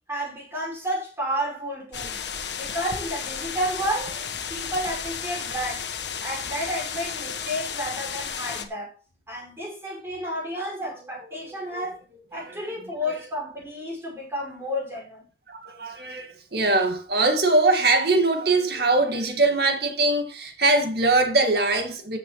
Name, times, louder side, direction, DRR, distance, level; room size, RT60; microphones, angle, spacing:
voice 1, 0.1-2.2 2.6-5.9 6.2-9.0 9.3-12.0 12.3-15.3, equal, 15° right, 6.3 m, -31 dB
sound 1, 1.9-8.7, left 7 dB, 85° left, 1.5 m, -33 dB
voice 2, 11.5-11.8 12.3-13.1 15.5-22.2, right 2 dB, 65° right, 2.3 m, -22 dB
14.0 x 7.6 x 3.3 m
head